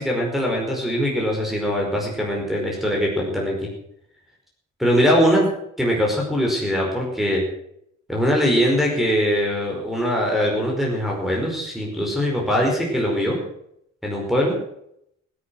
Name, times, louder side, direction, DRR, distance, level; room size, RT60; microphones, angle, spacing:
voice 1, 0.0-3.7 4.8-5.5 5.8-7.4 8.1-13.4 14.0-14.6, equal, ahead, -3 dB, 4.9 m, -22 dB
16.0 x 10.5 x 6.2 m, 0.74 s
cardioid pair, 90°, 30 cm